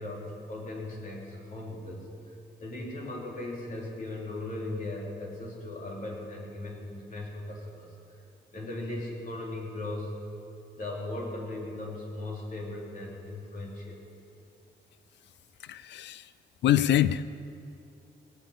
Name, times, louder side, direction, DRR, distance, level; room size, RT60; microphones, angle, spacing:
voice 1, 0.0-7.9 8.5-10.1 10.7-14.0, left 2 dB, 50° left, -3 dB, 3.6 m, -38 dB
voice 2, 15.6-16.3 16.6-17.2, left 11 dB, 80° left, 15 dB, 0.4 m, -25 dB
17.5 x 8.1 x 8.2 m, 2.5 s
wide cardioid pair, 135°, 18 cm